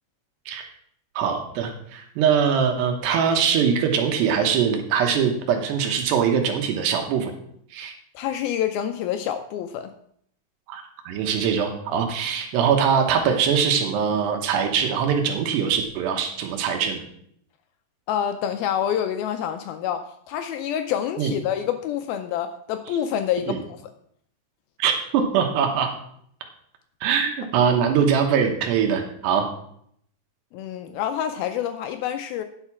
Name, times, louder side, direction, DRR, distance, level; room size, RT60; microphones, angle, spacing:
voice 1, 1.2-7.3 7.7-7.9 10.7-17.0 21.2-21.3 23.5-23.6 24.8-25.9 27.0-29.5, right 7 dB, 85° right, 3 dB, 3.3 m, -22 dB
voice 2, 8.2-9.9 18.1-23.8 30.5-32.4, left 9 dB, 85° left, 8 dB, 2.2 m, -27 dB
9.9 x 6.6 x 5.9 m, 0.67 s
omnidirectional pair, 4.8 m